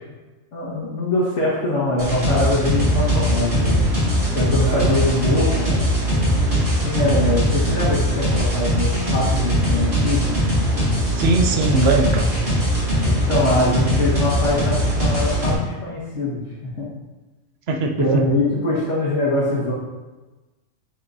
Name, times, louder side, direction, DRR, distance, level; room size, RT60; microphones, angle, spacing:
voice 1, 0.5-3.9 4.3-5.8 6.7-10.3 13.3-16.4 16.8-16.9 18.0-19.7, left 2 dB, 65° left, -9 dB, 2.1 m, -23 dB
sound 1, 2.0-15.5, equal, 40° right, 2.7 m, -20 dB
voice 2, 4.7-5.0 7.0-7.3 11.2-12.3 17.7-18.3, right 3 dB, 55° right, 4 dB, 0.9 m, -21 dB
11.0 x 5.1 x 2.7 m, 1.2 s
omnidirectional pair, 1.4 m